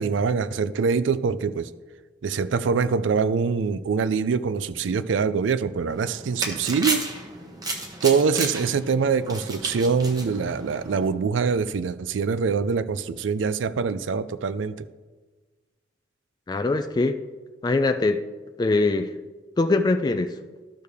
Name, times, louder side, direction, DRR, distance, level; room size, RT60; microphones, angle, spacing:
voice 1, 0.0-1.7 2.2-7.1 8.0-14.9, right 5 dB, 80° right, 14 dB, 0.4 m, -24 dB
sound 1, 5.9-11.1, right 2 dB, 20° right, 1.0 m, -33 dB
voice 2, 16.5-17.2 17.6-18.2 18.6-19.1 19.6-20.3, left 3 dB, 20° left, 8 dB, 0.3 m, -22 dB
12.0 x 6.5 x 3.5 m, 1.3 s
head